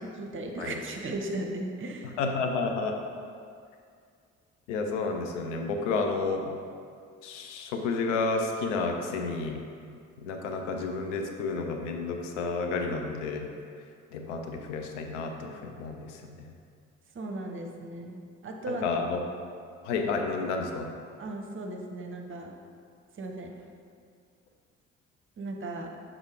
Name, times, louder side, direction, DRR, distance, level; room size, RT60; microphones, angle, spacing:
voice 1, 0.0-2.2 17.1-18.9 21.2-22.6 23.2-23.5 25.4-25.9, right 2 dB, 35° right, 2 dB, 0.8 m, -36 dB
voice 2, 2.2-2.9 4.7-6.4 7.2-9.6 10.2-13.4 14.1-16.2 18.7-19.2 19.8-20.9, left 4 dB, 70° left, 3 dB, 0.7 m, -31 dB
6.5 x 3.7 x 4.7 m, 2.3 s
figure-of-eight pair, 45°, 37 cm